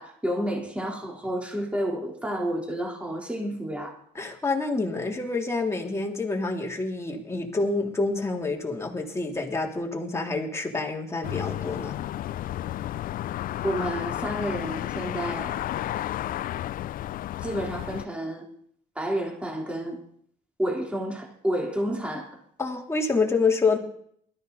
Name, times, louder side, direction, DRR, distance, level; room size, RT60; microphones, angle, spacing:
voice 1, 0.0-3.9 13.6-15.6 17.4-18.5 18.9-20.0 20.6-22.4, equal, 5° right, 0 dB, 3.4 m, -30 dB
voice 2, 4.1-12.0 22.6-23.8, left 3 dB, 15° left, 1 dB, 3.2 m, -27 dB
sound 1, 11.2-18.0, left 13 dB, 55° left, 0.5 m, -32 dB
21.0 x 13.5 x 4.0 m, 0.64 s
cardioid pair, 110°, 17 cm